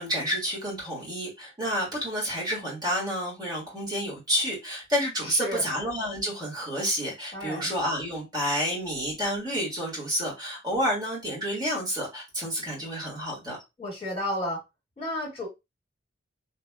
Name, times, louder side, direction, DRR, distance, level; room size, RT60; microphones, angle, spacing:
voice 1, 0.0-13.6, equal, 20° right, 1.6 m, -29 dB
voice 2, 5.2-5.6 7.3-7.7 13.8-14.6 15.0-15.5, left 1 dB, 30° left, 1.6 m, -32 dB
3.0 x 2.6 x 2.2 m
head